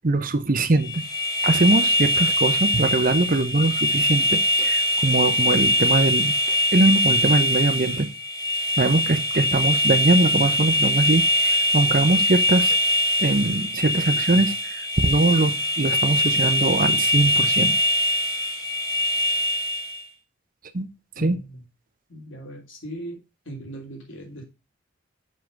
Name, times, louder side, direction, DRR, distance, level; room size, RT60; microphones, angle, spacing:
voice 1, 0.0-1.0 1.4-8.1 8.8-12.8 13.2-17.7 20.7-20.9 21.2-21.4, right 2 dB, 45° right, 0.8 m, -22 dB
sound 1, 0.8-20.0, left 1 dB, 20° left, 1.4 m, -22 dB
voice 2, 21.2-21.6 22.1-23.2 23.4-24.4, right 1 dB, 70° left, 3.0 m, -38 dB
6.5 x 5.6 x 5.3 m
head